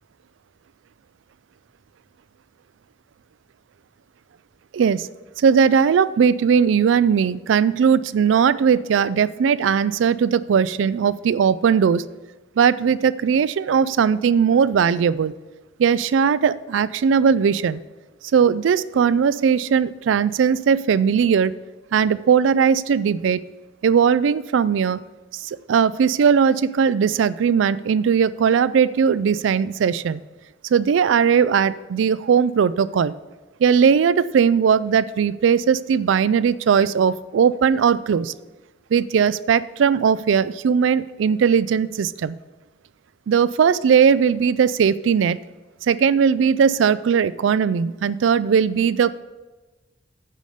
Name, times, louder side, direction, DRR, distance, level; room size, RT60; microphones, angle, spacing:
voice 1, 4.7-5.1 5.4-12.0 12.6-15.3 15.8-17.8 18.3-21.6 21.9-23.4 23.8-25.0 25.3-30.2 30.7-33.1 33.6-38.3 38.9-42.4 43.3-45.4 45.8-49.2, right 7 dB, 80° right, 17 dB, 0.3 m, -18 dB
9.4 x 5.0 x 6.6 m, 1.2 s
head